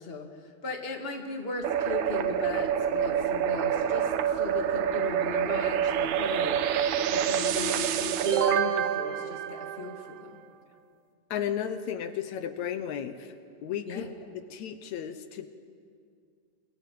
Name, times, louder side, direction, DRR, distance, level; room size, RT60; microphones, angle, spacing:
voice 1, 0.0-6.6 7.1-10.4 13.9-14.1, left 3 dB, 20° left, 3 dB, 2.0 m, -37 dB
sound 1, 1.6-10.3, right 9 dB, 80° right, 2.5 m, -27 dB
voice 2, 11.3-13.3 13.6-15.5, left 9 dB, 75° left, 10 dB, 2.2 m, -34 dB
28.5 x 22.0 x 7.7 m, 2.3 s
omnidirectional pair, 3.3 m